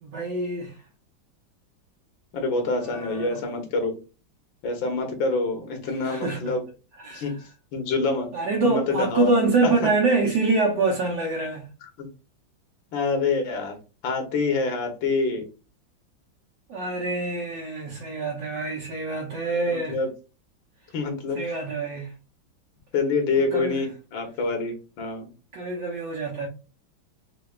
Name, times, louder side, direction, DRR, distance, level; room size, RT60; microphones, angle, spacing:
voice 1, 0.0-0.7 2.8-3.4 6.0-6.5 7.0-7.3 8.3-11.7 16.7-20.0 21.3-22.1 23.3-23.8 25.5-26.5, right 3 dB, 65° right, 1.5 m, -25 dB
voice 2, 2.3-3.9 4.6-6.6 7.1-7.3 7.7-8.3 8.6-9.4 9.6-9.7 11.8-12.1 12.9-13.8 14.0-15.5 19.7-20.1 20.9-21.4 22.9-25.3, left 3 dB, 70° left, 1.9 m, -26 dB
5.8 x 2.9 x 2.4 m
omnidirectional pair, 2.2 m